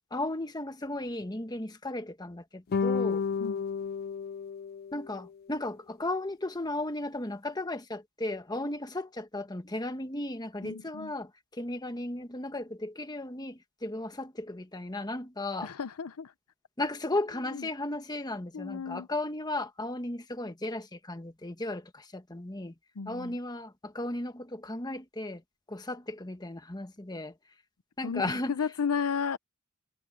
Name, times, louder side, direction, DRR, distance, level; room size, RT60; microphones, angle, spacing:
voice 1, 0.1-3.3 4.9-15.7 16.8-22.7 23.1-25.4 25.7-27.3 28.0-28.6, left 2 dB, 20° left, 1.3 m, -35 dB
sound 1, 2.7-5.3, left 5 dB, 45° left, 0.4 m, -31 dB
voice 2, 10.6-11.1 15.6-16.3 17.5-17.7 18.5-19.1 23.0-23.4 28.0-28.2 28.5-29.4, left 6 dB, 85° left, 0.6 m, -33 dB
head